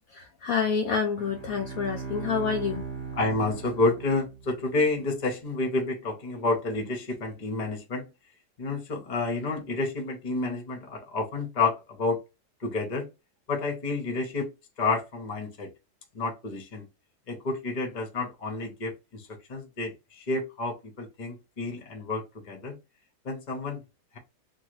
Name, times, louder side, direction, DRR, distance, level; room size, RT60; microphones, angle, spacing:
voice 1, 0.2-2.8, left 6 dB, 75° left, 0.8 m, -28 dB
Bowed string instrument, 1.1-4.7, right 5 dB, 40° right, 1.2 m, -38 dB
voice 2, 3.1-8.1 8.6-12.2 12.6-13.1 13.5-14.5 14.8-15.7 16.1-16.9 17.3-22.8 23.2-23.8, left 3 dB, 40° left, 0.6 m, -29 dB
3.1 x 2.3 x 3.0 m
omnidirectional pair, 2.0 m